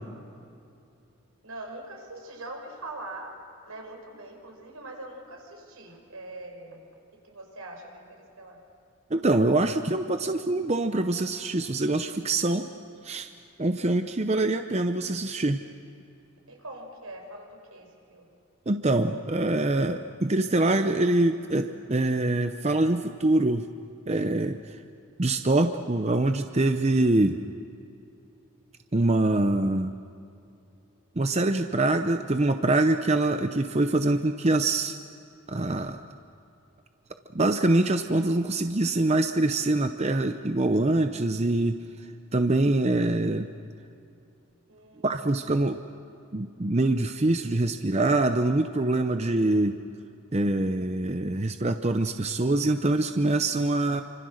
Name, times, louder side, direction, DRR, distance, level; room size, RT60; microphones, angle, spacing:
voice 1, 1.4-3.4 3.7-6.8 7.2-8.6 16.5-18.2 44.7-45.3, right 2 dB, 85° right, 2 dB, 5.3 m, -42 dB
voice 2, 9.1-12.7 13.0-13.3 13.6-15.6 18.7-23.7 24.1-24.8 25.2-27.4 28.9-29.9 31.2-35.0 35.5-36.0 37.3-41.7 42.3-43.5 45.0-45.8 46.3-49.7 50.3-54.0, right 2 dB, 30° right, 7 dB, 0.6 m, -24 dB
28.0 x 25.5 x 6.5 m, 2.6 s
head